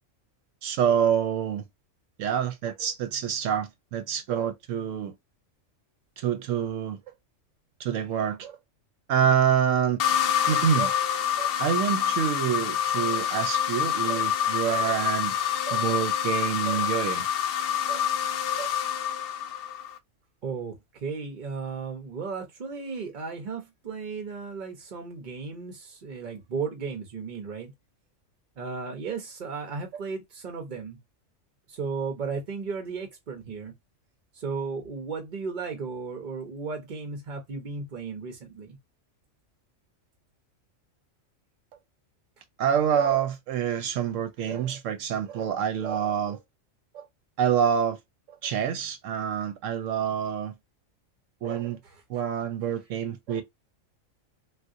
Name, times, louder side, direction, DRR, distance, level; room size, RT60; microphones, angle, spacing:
voice 1, 0.6-1.6 2.2-5.1 6.2-7.0 7.8-8.6 9.1-10.2 10.5-10.9 11.4-15.3 15.7-17.3 17.9-18.0 18.6-18.7 42.6-46.4 46.9-47.0 47.4-48.0 48.4-50.5 51.4-51.8 52.1-53.4, right 8 dB, 75° right, 0.9 m, -27 dB
sound 1, 10.0-20.0, left 9 dB, 65° left, 0.6 m, -27 dB
voice 2, 20.4-27.7 28.6-31.0 31.7-33.7 34.3-38.8 51.8-52.0, right 5 dB, 45° right, 0.7 m, -35 dB
3.5 x 2.4 x 2.5 m
omnidirectional pair, 1.3 m